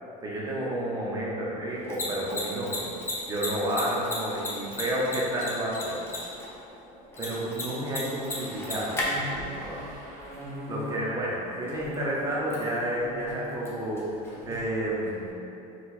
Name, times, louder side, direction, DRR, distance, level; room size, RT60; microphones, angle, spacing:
voice 1, 0.2-2.9 3.3-6.0 7.2-10.0 10.7-14.0 14.5-15.4, right 1 dB, 20° right, -5 dB, 0.8 m, -30 dB
Mechanisms, 1.7-15.3, left 1 dB, 10° left, 0.7 m, -37 dB
sound 1, 8.3-14.0 14.3-14.6, left 1 dB, 40° right, 0.8 m, -41 dB
4.4 x 2.5 x 4.0 m, 2.9 s
supercardioid pair, 140°, 20 cm